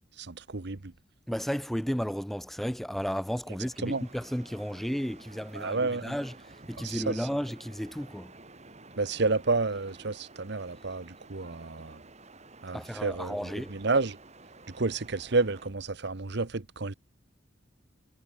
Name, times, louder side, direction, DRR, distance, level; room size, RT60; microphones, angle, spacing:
voice 1, 0.2-0.9 3.8-4.0 5.5-6.1 6.8-7.2 9.0-12.0 12.6-14.2 14.7-16.9, right 3 dB, 60° right, 1.1 m, -30 dB
voice 2, 1.3-8.4 12.7-13.8, equal, ahead, 0.4 m, -33 dB
sound 1, 3.7-15.7, right 3 dB, 35° right, 7.0 m, -52 dB
head